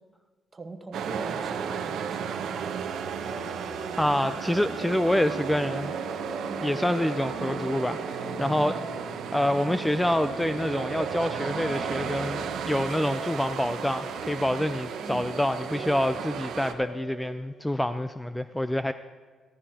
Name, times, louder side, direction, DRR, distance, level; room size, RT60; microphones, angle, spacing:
voice 1, 0.5-3.1 6.5-6.8 8.6-8.9 15.0-15.4, right 3 dB, 30° right, 5 dB, 1.1 m, -41 dB
sound 1, 0.9-16.7, right 7 dB, 75° right, 0.8 m, -34 dB
sound 2, 3.0-17.4, equal, 30° left, 2.2 m, -43 dB
voice 2, 4.0-5.9 6.6-8.8 9.3-18.9, left 1 dB, 5° left, 11 dB, 0.3 m, -27 dB
Race car auto racing, 17.1-17.4, right 1 dB, 75° left, 3.6 m, -53 dB
14.5 x 13.5 x 2.9 m, 1.4 s
cardioid pair, 90°, 0 cm